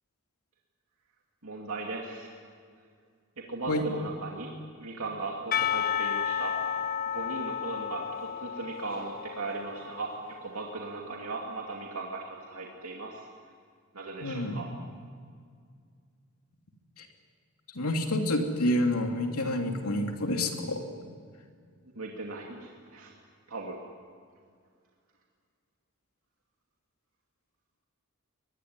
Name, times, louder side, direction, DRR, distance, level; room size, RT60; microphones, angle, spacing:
voice 1, 1.4-2.4 3.4-4.5 4.8-6.6 6.9-10.1 10.4-13.3 13.9-14.7 21.9-23.1 23.5-23.8, right 3 dB, 75° right, -1 dB, 2.6 m, -38 dB
Percussion / Church bell, 5.5-10.3, left 9 dB, 40° left, 0.6 m, -32 dB
voice 2, 14.2-14.6 17.0-17.1 17.7-20.8, left 1 dB, 90° left, 3 dB, 3.0 m, -28 dB
23.5 x 21.0 x 9.7 m, 2.1 s
head